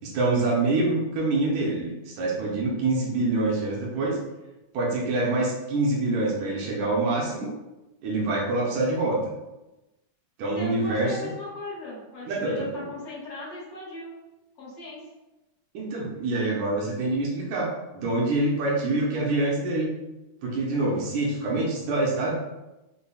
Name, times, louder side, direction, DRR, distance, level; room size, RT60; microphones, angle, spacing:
voice 1, 0.0-4.2 4.7-7.5 8.0-9.2 10.4-11.2 12.3-12.8 15.7-19.9 20.4-22.4, right 2 dB, 80° right, -3 dB, 2.0 m, -26 dB
voice 2, 10.5-14.1 14.6-15.0, left 2 dB, 60° left, -9 dB, 1.7 m, -38 dB
5.2 x 2.1 x 2.3 m, 1.0 s
omnidirectional pair, 3.3 m